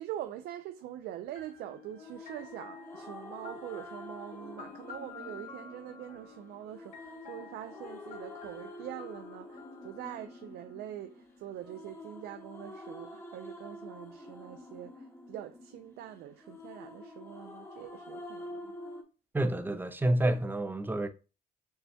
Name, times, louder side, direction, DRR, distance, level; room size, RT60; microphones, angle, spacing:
voice 1, 0.0-18.7, right 12 dB, 70° right, 0.4 m, -44 dB
sound 1, 1.3-11.1, left 6 dB, 45° left, 0.6 m, -51 dB
sound 2, 2.0-19.0, left 1 dB, 15° left, 0.8 m, -48 dB
voice 2, 19.3-21.1, right 1 dB, 10° right, 0.4 m, -28 dB
6.4 x 2.2 x 2.7 m
cardioid pair, 110°, 17 cm